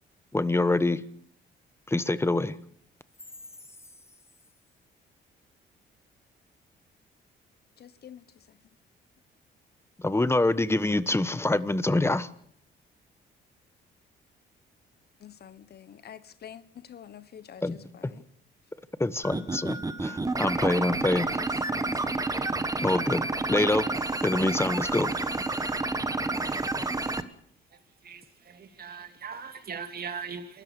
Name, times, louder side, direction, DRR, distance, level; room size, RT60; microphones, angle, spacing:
voice 1, 0.3-1.0 1.9-2.6 10.0-12.3 17.6-17.8 19.0-21.3 22.8-23.8 24.2-25.1, left 2 dB, 10° left, 1.2 m, -25 dB
voice 2, 7.8-8.6 15.2-18.2 20.7-21.1 21.3-22.2, left 9 dB, 55° left, 1.1 m, -48 dB
sound 1, 19.2-27.2, right 2 dB, 15° right, 1.5 m, -29 dB
voice 3, 27.7-30.6, right 6 dB, 50° right, 2.9 m, -40 dB
28.5 x 13.5 x 6.9 m
cardioid pair, 90°, 20 cm